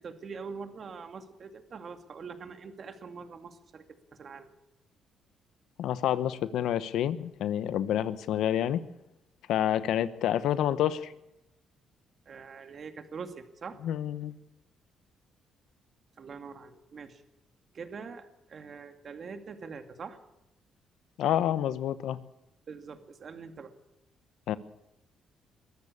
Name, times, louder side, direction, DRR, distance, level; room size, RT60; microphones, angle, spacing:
voice 1, 0.0-3.8 4.1-4.5 12.3-13.8 16.2-17.2 17.7-20.2 22.7-23.7, right 5 dB, 50° right, 7 dB, 2.3 m, -43 dB
voice 2, 5.8-8.8 9.5-11.1 13.8-14.3 21.2-22.2 24.5-24.6, left 11 dB, 80° left, 14 dB, 1.0 m, -28 dB
22.5 x 14.0 x 8.5 m, 0.87 s
cardioid pair, 90°, 0 cm